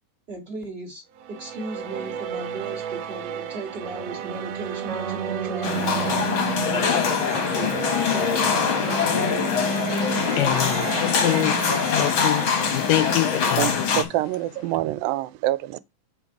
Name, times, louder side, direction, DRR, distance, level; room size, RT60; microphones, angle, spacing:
voice 1, 0.3-1.0 1.3-6.2 6.8-7.7 8.1-8.4, right 3 dB, 30° right, 1.2 m, -37 dB
sound 1, 1.1-13.5, right 9 dB, 70° right, 2.2 m, -34 dB
sound 2, 2.3-3.2 4.9-7.2 8.9-10.2, right 5 dB, 55° right, 1.2 m, -32 dB
sound 3, 5.6-14.0, left 6 dB, 55° left, 1.5 m, -23 dB
voice 2, 10.3-13.8, left 16 dB, 80° left, 2.2 m, -26 dB
voice 3, 13.6-15.8, right 15 dB, 90° right, 2.4 m, -26 dB
8.5 x 3.9 x 4.7 m
omnidirectional pair, 4.1 m